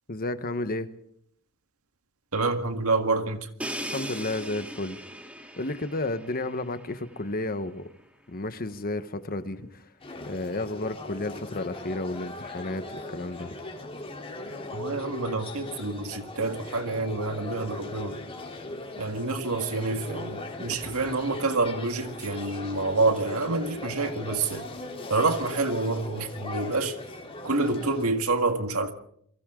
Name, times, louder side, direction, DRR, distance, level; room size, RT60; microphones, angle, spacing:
voice 1, 0.1-0.9 3.9-5.0 5.6-7.8 8.3-9.8 10.3-13.5, left 2 dB, 45° left, 1.2 m, -32 dB
voice 2, 2.3-3.5 14.7-18.2 19.0-24.7 25.1-27.0 27.4-28.9, right 3 dB, 80° right, 1.9 m, -27 dB
Crash cymbal, 3.6-7.4, equal, 5° right, 2.3 m, -39 dB
sound 1, 10.0-28.1, left 2 dB, 25° left, 3.5 m, -39 dB
29.5 x 23.0 x 3.8 m
head